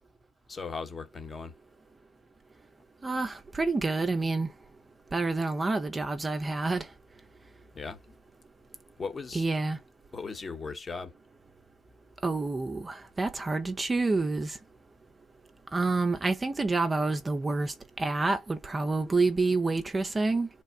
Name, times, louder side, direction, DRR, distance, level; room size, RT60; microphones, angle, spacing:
voice 1, 0.5-1.5 7.7-8.0 9.0-9.5 10.1-11.1, left 4 dB, 25° left, 0.9 m, -38 dB
voice 2, 3.0-4.5 5.1-6.9 9.3-9.8 12.2-14.6 15.7-20.5, right 3 dB, 20° right, 0.5 m, -28 dB
3.3 x 2.1 x 3.6 m
supercardioid pair, 90°, 0 cm